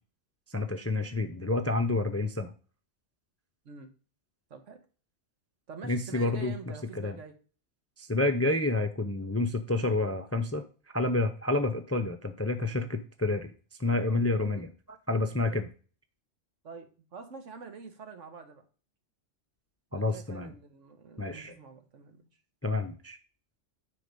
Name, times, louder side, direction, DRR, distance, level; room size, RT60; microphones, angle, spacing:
voice 1, 0.5-2.5 5.8-6.5 6.9-7.2 8.0-10.6 10.9-13.5 13.8-15.7 19.9-20.5 21.2-21.5 22.6-23.2, left 2 dB, 20° left, 0.5 m, -29 dB
voice 2, 5.7-7.3 14.5-14.7 16.6-18.6 19.9-22.2, right 5 dB, 80° right, 1.6 m, -46 dB
9.8 x 3.9 x 5.3 m
omnidirectional pair, 1.3 m